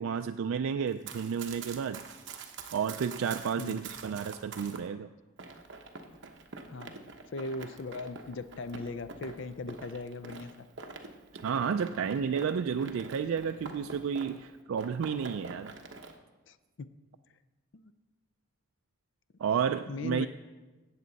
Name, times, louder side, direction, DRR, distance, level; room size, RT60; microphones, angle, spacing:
voice 1, 0.0-2.0 2.7-5.1 11.4-15.7 19.4-20.3, right 7 dB, 70° right, 8 dB, 0.3 m, -31 dB
Run, 0.9-4.8 5.4-14.5 14.8-16.1, right 4 dB, 55° right, 1.0 m, -46 dB
voice 2, 6.7-7.0 7.3-10.5 16.5-16.6 17.7-17.9 19.9-20.3, left 3 dB, 55° left, 13 dB, 0.4 m, -38 dB
17.0 x 7.3 x 4.0 m, 1.2 s
head